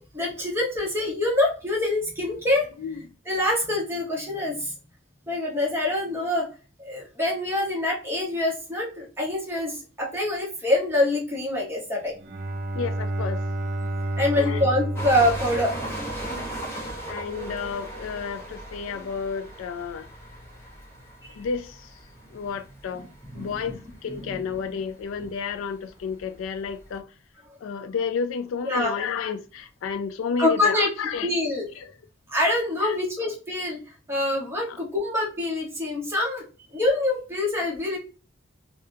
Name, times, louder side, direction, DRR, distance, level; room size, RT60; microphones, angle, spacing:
voice 1, 0.0-4.7 5.3-6.5 6.8-12.1 14.2-15.7 18.9-19.0 21.2-21.3 22.9-23.8 24.1-24.4 28.6-28.9 30.4-30.9 31.2-31.7 32.3-33.8 34.1-36.4 36.7-38.0, left 1 dB, 10° right, 1.1 m, -25 dB
Bowed string instrument, 12.2-16.7, right 1 dB, 40° right, 0.5 m, -30 dB
voice 2, 12.7-13.4 14.4-14.6 17.1-20.1 21.4-21.8 22.3-23.0 23.3-27.1 27.6-31.3 32.8-33.0 34.7-34.8, left 6 dB, 70° left, 0.3 m, -31 dB
sound 1, 15.0-27.0, right 1 dB, 15° left, 0.8 m, -38 dB
3.6 x 2.2 x 2.7 m
head